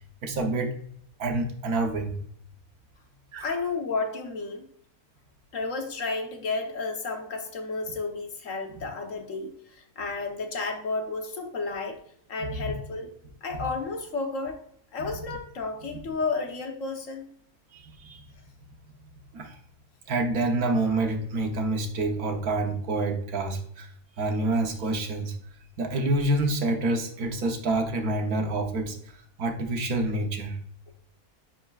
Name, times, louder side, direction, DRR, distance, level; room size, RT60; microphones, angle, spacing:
voice 1, 0.2-0.7 1.2-2.1 3.3-3.5 8.8-8.9 12.4-12.8 13.5-13.6 15.0-15.2 17.7-18.2 19.3-19.6 20.1-23.9 24.2-25.3 25.8-29.0 29.4-30.6, right 2 dB, 80° right, 4 dB, 1.5 m, -27 dB
voice 2, 3.4-4.7 5.5-12.0 12.3-13.1 13.4-14.6 14.9-17.3, left 3 dB, 60° left, 4 dB, 1.4 m, -32 dB
10.0 x 4.5 x 2.4 m, 0.65 s
omnidirectional pair, 1.5 m